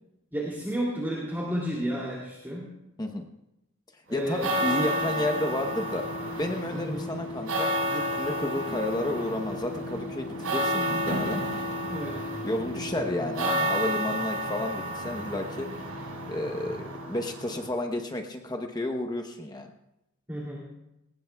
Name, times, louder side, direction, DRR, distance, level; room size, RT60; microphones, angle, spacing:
voice 1, 0.3-2.7 4.1-4.5 6.7-7.2 11.9-12.3 20.3-20.6, right 1 dB, 10° right, -5 dB, 2.8 m, -32 dB
voice 2, 4.1-6.1 6.4-11.4 12.4-15.7 16.3-19.7, left 1 dB, 20° left, 4 dB, 0.9 m, -31 dB
sound 1, 4.2-17.7, equal, 85° right, 4.8 m, -31 dB
21.5 x 18.5 x 2.3 m, 0.88 s
head